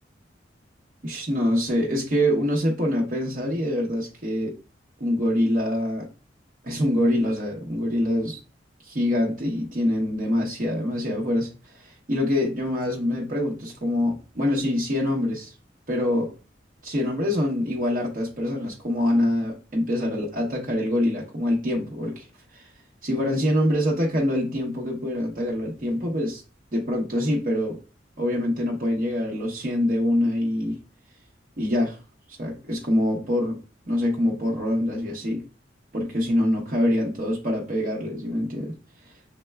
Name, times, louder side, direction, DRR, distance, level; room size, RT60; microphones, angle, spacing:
voice 1, 1.0-4.5 5.0-6.1 6.6-8.4 8.8-15.5 15.9-16.3 16.8-22.3 22.5-22.7 23.0-26.4 26.7-27.8 28.2-30.8 31.6-32.0 32.3-33.6 33.9-35.4 35.9-38.8, left 1 dB, 45° right, 0.8 m, -25 dB
6.5 x 3.1 x 2.3 m
head